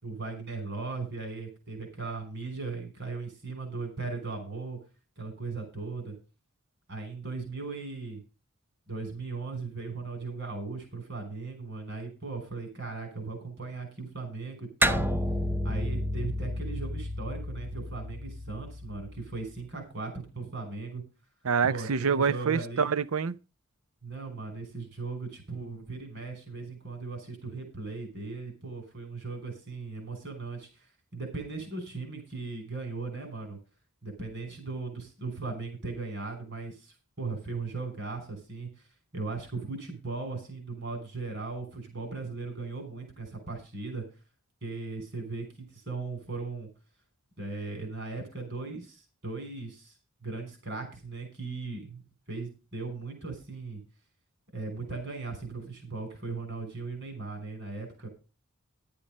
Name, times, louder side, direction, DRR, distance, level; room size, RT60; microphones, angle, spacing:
voice 1, 0.0-4.8 5.2-6.1 6.9-8.2 8.9-15.1 15.6-21.0 21.6-22.9 24.0-30.7 31.1-33.6 34.0-38.7 39.1-44.0 44.6-46.7 47.4-49.9 50.2-52.0 52.3-53.8 54.5-58.1, right 3 dB, 55° right, 6.1 m, -38 dB
sound 1, 14.8-19.6, equal, 10° right, 0.6 m, -31 dB
voice 2, 21.4-23.4, right 6 dB, 80° right, 0.6 m, -26 dB
11.5 x 8.8 x 5.3 m
head